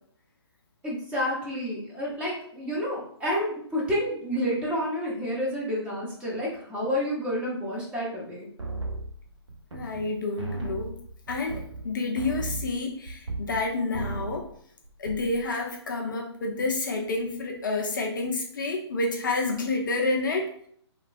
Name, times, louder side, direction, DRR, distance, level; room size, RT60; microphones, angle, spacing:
voice 1, 0.8-8.5, equal, 10° right, -6 dB, 0.6 m, -29 dB
sound 1, 8.6-10.1 10.4-13.7 13.9-14.5 14.8-15.4, right 2 dB, 75° right, 0.6 m, -36 dB
voice 2, 9.7-11.0 11.3-14.5 15.0-20.5, left 3 dB, 45° left, 2 dB, 0.4 m, -29 dB
2.9 x 2.2 x 2.5 m, 0.63 s
figure-of-eight pair, 130°, 15 cm